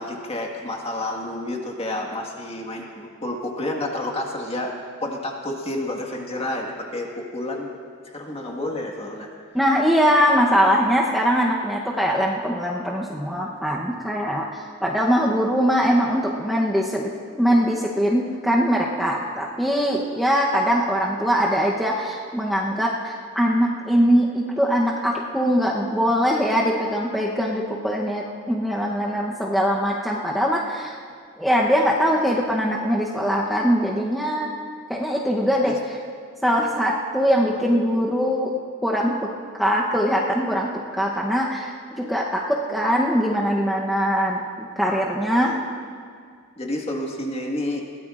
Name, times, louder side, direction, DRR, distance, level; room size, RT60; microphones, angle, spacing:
voice 1, 0.0-4.7 5.0-7.7 8.1-9.3 29.1-29.3 35.5-35.7 36.6-36.8 37.5-38.1 45.3-45.6 46.6-47.8, left 1 dB, 25° left, 0 dB, 1.7 m, -30 dB
voice 2, 9.5-14.5 14.8-17.1 17.4-31.0 31.4-34.5 34.9-36.0 36.4-38.5 38.8-39.3 39.6-45.6, equal, ahead, -4 dB, 0.9 m, -22 dB
21.5 x 17.5 x 2.5 m, 2.2 s
head